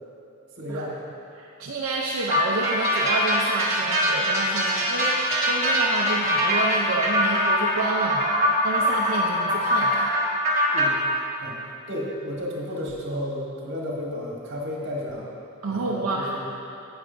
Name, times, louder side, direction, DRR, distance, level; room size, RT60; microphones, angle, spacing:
voice 1, 0.6-1.0 10.7-10.9 11.4-11.6 11.9-15.3 15.7-16.5, left 1 dB, 60° right, -4 dB, 1.5 m, -32 dB
voice 2, 1.3-10.1 15.6-16.3, right 3 dB, 80° right, -3 dB, 0.6 m, -29 dB
sound 1, 2.3-10.9, equal, 30° right, 1.5 m, -23 dB
9.7 x 7.9 x 2.6 m, 2.7 s
head